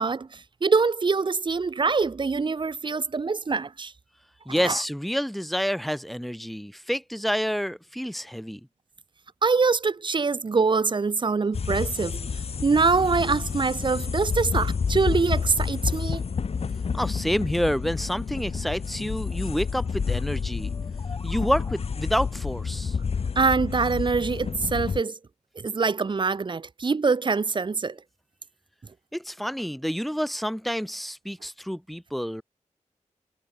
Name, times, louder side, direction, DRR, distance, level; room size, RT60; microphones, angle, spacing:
voice 1, 0.0-3.9 4.6-4.8 9.4-12.3 12.6-16.2 23.4-25.2 25.6-28.0, right 4 dB, 40° right, 2.1 m, -24 dB
voice 2, 4.5-8.6 16.9-20.7 21.2-23.0 29.1-32.4, equal, ahead, 1.1 m, -28 dB
sound 1, 11.5-25.0, left 5 dB, 55° left, 2.2 m, -29 dB
sound 2, 20.6-22.4, left 3 dB, 30° left, 6.8 m, -47 dB
wide cardioid pair, 160°, 13 cm